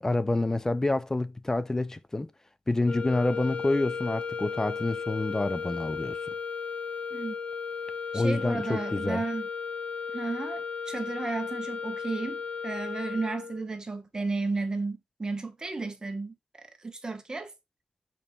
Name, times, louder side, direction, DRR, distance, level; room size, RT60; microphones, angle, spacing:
voice 1, 0.0-2.3 2.7-6.2 8.1-9.2, left 2 dB, 20° left, 0.5 m, -28 dB
sound 1, 2.8-13.7, left 5 dB, 45° left, 0.8 m, -35 dB
voice 2, 8.1-9.5 10.1-16.3 16.8-17.5, right 3 dB, 25° right, 1.3 m, -33 dB
6.6 x 4.6 x 3.6 m
cardioid pair, 90°, 3 cm